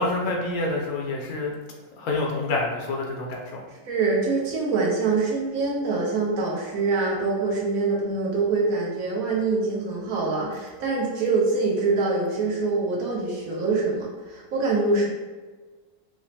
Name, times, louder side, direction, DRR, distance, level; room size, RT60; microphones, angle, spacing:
voice 1, 0.0-1.5 2.0-3.6, left 2 dB, 70° left, -1 dB, 1.1 m, -27 dB
voice 2, 3.8-15.1, right 3 dB, 65° right, -4 dB, 1.2 m, -24 dB
4.9 x 2.1 x 2.7 m, 1.3 s
omnidirectional pair, 1.7 m